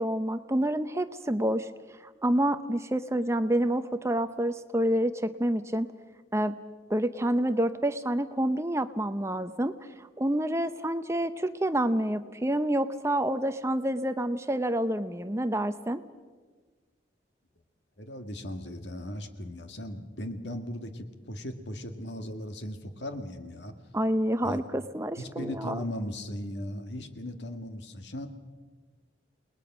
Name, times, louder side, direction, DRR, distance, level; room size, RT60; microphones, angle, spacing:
voice 1, 0.0-1.7 2.2-5.9 6.3-6.6 6.9-16.0 23.9-25.8, right 1 dB, 15° right, 11 dB, 0.7 m, -28 dB
voice 2, 18.0-23.7 24.4-24.6 25.2-28.3, left 1 dB, 70° left, 7 dB, 2.0 m, -37 dB
28.5 x 20.0 x 6.1 m, 1.4 s
head